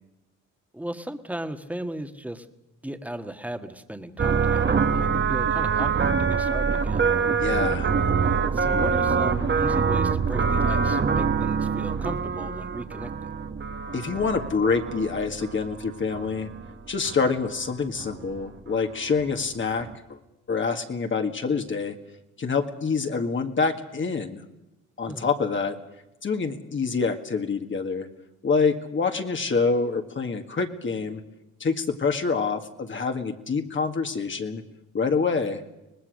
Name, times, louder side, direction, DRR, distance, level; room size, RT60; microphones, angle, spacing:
voice 1, 0.7-2.5 2.8-7.1 8.2-13.3 25.1-25.3, right 1 dB, 5° right, 7 dB, 1.6 m, -36 dB
sound 1, 4.2-16.7 17.0-17.7 18.0-18.4 18.9-19.0 19.2-19.5 19.8-20.0, right 5 dB, 35° right, 1.5 m, -25 dB
voice 2, 7.4-7.9 13.9-16.5 16.9-20.2 20.5-22.0 22.4-24.4 25.0-25.8 26.2-28.1 28.4-31.2 31.6-34.6 34.9-35.6, left 4 dB, 40° left, 5 dB, 1.9 m, -26 dB
25.0 x 19.5 x 6.5 m, 0.95 s
cardioid pair, 90°, 30 cm